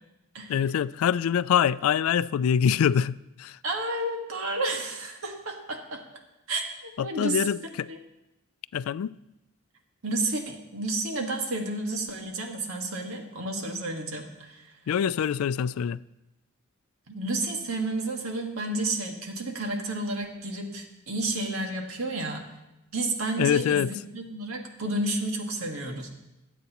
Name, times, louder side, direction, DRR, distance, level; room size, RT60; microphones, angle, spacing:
voice 1, 0.5-3.6 7.0-7.9 8.7-9.1 14.9-16.0 23.4-23.9, left 8 dB, 85° left, 0.3 m, -25 dB
voice 2, 3.6-6.0 6.5-7.4 7.9-8.0 10.0-14.7 17.1-22.5 22.9-26.1, right 2 dB, 90° right, 1.7 m, -31 dB
20.5 x 8.2 x 3.0 m
head